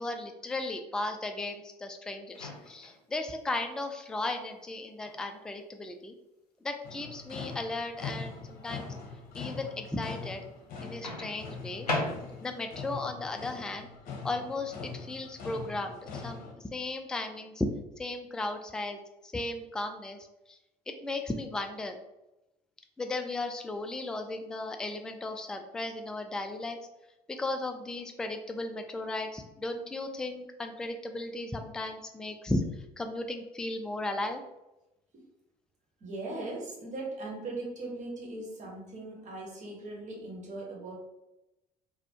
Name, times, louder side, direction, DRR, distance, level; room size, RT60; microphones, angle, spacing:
voice 1, 0.0-6.1 6.6-8.9 9.3-10.4 10.8-11.9 12.4-13.9 14.2-17.7 18.0-20.2 20.5-20.6 20.9-22.0 23.0-26.8 27.3-32.6 33.0-34.4, left 2 dB, 5° left, 6 dB, 0.3 m, -35 dB
Microwave oven, 2.3-3.0 5.0-5.2 11.0-12.6, left 2 dB, 90° left, 0.5 m, -35 dB
sound 1, 6.8-16.5, left 4 dB, 50° left, 0.8 m, -42 dB
voice 2, 36.0-41.0, right 2 dB, 40° right, -2 dB, 1.2 m, -39 dB
4.1 x 2.1 x 2.8 m, 0.94 s
figure-of-eight pair, 55°, 20 cm